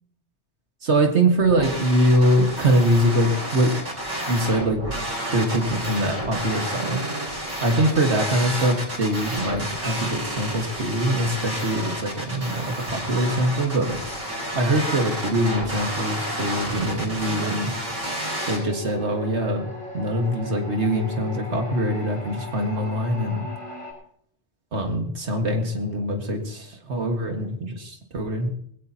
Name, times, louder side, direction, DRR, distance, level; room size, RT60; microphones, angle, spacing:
voice 1, 0.8-3.7 4.3-4.8 5.3-7.3 7.6-14.0 14.5-17.7 18.5-23.5 24.7-28.5, right 1 dB, 75° right, 3 dB, 2.0 m, -23 dB
sound 1, 1.4-18.6, right 1 dB, 40° right, 4.9 m, -30 dB
sound 2, 18.3-23.9, left 1 dB, 75° left, 5.4 m, -37 dB
20.5 x 16.0 x 2.9 m, 0.63 s
omnidirectional pair, 1.2 m